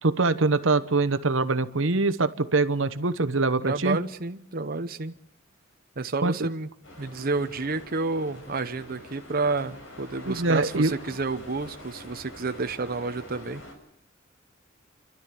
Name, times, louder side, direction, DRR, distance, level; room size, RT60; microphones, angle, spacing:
voice 1, 0.0-4.0 6.2-6.5 10.3-10.9, right 3 dB, 75° right, 12 dB, 1.1 m, -24 dB
voice 2, 3.6-5.1 6.0-6.7 7.0-13.6, right 3 dB, 50° right, 7 dB, 0.9 m, -30 dB
sound 1, 6.8-13.7, left 1 dB, 70° left, 6.3 m, -45 dB
30.0 x 12.5 x 8.5 m, 0.78 s
head